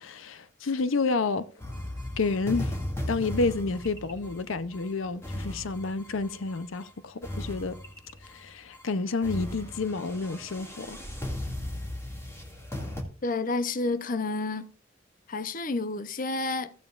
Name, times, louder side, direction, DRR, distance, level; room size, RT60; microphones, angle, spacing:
voice 1, 0.0-1.5 2.2-2.8 3.1-7.8 8.2-11.0, left 3 dB, 85° left, 0.7 m, -30 dB
sound 1, 1.6-6.9 7.2-8.4 8.7-8.9 9.2-13.0, left 1 dB, 15° left, 2.2 m, -37 dB
voice 2, 13.2-14.7 15.3-16.7, left 3 dB, 45° left, 0.7 m, -30 dB
15.0 x 8.9 x 2.5 m
head